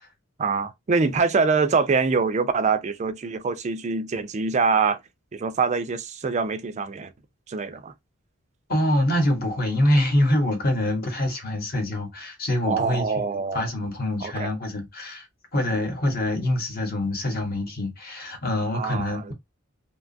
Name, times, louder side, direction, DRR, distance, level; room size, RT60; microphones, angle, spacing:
voice 1, 0.4-5.0 5.3-7.1 7.5-7.9 12.7-13.7 14.2-14.5 18.7-19.3, right 5 dB, 35° right, 0.4 m, -24 dB
voice 2, 8.7-13.2 13.5-15.3 15.5-19.3, left 1 dB, 45° left, 1.0 m, -25 dB
2.8 x 2.3 x 2.5 m
head